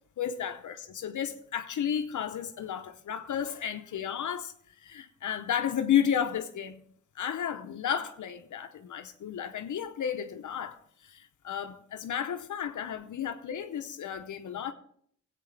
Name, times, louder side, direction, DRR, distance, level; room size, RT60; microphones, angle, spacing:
voice 1, 0.2-6.8 7.1-14.7, left 9 dB, 75° left, 0.8 m, -32 dB
18.0 x 8.3 x 3.3 m
wide cardioid pair, 130°, 30 cm